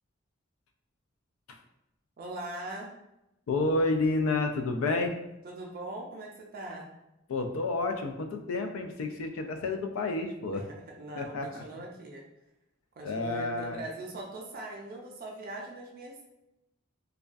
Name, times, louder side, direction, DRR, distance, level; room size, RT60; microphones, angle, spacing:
voice 1, 2.2-2.9 5.4-6.9 10.5-12.2 13.0-16.2, right 2 dB, 45° right, 0 dB, 0.4 m, -41 dB
voice 2, 3.5-5.2 7.3-10.7 11.2-11.6 13.0-13.8, left 3 dB, 80° left, 6 dB, 0.3 m, -30 dB
2.4 x 2.2 x 2.4 m, 0.90 s
head